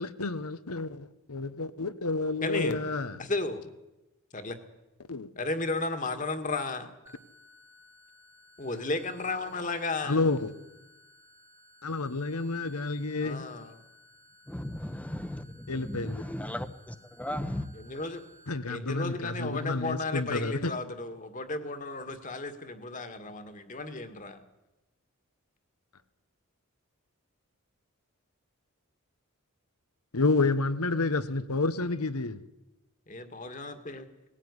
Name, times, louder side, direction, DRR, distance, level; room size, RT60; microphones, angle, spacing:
voice 1, 0.0-3.2 5.1-5.3 10.0-10.5 11.8-13.5 15.7-16.2 18.5-20.7 30.1-32.4, left 3 dB, 90° left, 1.2 m, -30 dB
voice 2, 2.4-2.8 3.2-3.7 4.3-4.6 5.4-6.9 8.6-10.2 13.2-13.8 17.8-18.2 18.6-24.4 33.1-34.1, left 2 dB, 35° left, 1.9 m, -34 dB
sound 1, 7.1-18.5, left 1 dB, 10° right, 1.6 m, -58 dB
voice 3, 14.5-17.7, left 1 dB, 5° left, 0.9 m, -36 dB
19.5 x 16.0 x 9.8 m
head